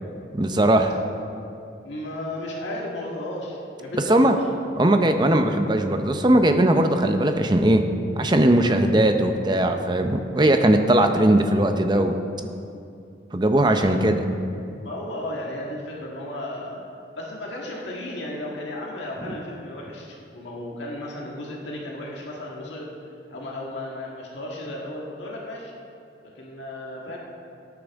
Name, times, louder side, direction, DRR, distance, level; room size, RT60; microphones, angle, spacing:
voice 1, 0.3-1.0 4.1-4.3 4.8-7.8 8.2-12.2 13.3-14.2, right 1 dB, 25° right, 6 dB, 0.7 m, -19 dB
voice 2, 1.8-4.6 8.6-8.8 13.6-14.0 14.8-16.8 17.1-22.9 23.3-25.7 26.3-27.2, left 1 dB, 75° left, -3 dB, 1.7 m, -34 dB
18.0 x 9.0 x 3.6 m, 2.6 s
head